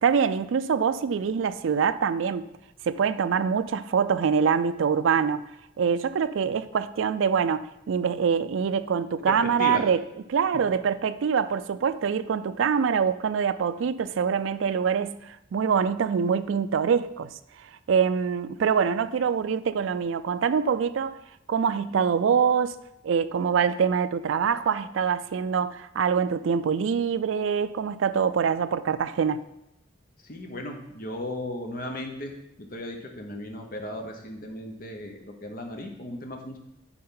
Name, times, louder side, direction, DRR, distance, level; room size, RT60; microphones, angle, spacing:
voice 1, 0.0-2.5 2.8-5.4 5.8-10.0 10.3-17.3 17.9-21.2 21.5-22.8 23.0-29.4, right 6 dB, 75° right, 13 dB, 0.3 m, -24 dB
voice 2, 9.3-9.8 30.2-32.3 32.6-36.6, left 1 dB, 45° left, 3 dB, 1.0 m, -36 dB
9.9 x 4.2 x 3.8 m, 0.82 s
head